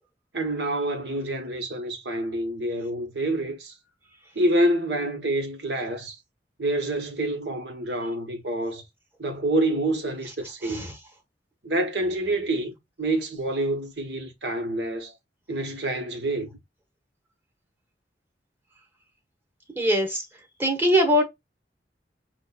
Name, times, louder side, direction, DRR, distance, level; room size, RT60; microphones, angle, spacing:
voice 1, 0.3-3.7 4.3-6.2 6.6-8.8 9.2-10.9 11.6-15.1 15.5-16.5, right 1 dB, 70° right, 1.4 m, -27 dB
voice 2, 10.6-11.0 19.7-20.3 20.6-21.2, equal, 10° right, 1.4 m, -22 dB
7.6 x 2.6 x 2.4 m
head